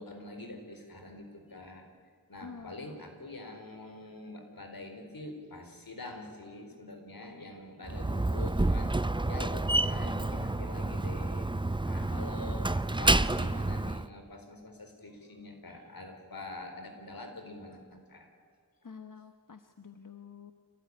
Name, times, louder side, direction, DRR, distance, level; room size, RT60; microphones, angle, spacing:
voice 1, 0.0-1.9 2.3-11.5 11.8-18.3, left 2 dB, 85° left, 5 dB, 4.2 m, -45 dB
voice 2, 2.4-3.0 12.0-12.3 18.8-20.5, left 6 dB, 65° left, 7 dB, 1.3 m, -49 dB
Slam, 7.9-14.1, right 2 dB, 15° right, 0.7 m, -29 dB
26.0 x 18.5 x 9.7 m, 2.1 s
wide cardioid pair, 45°, 34 cm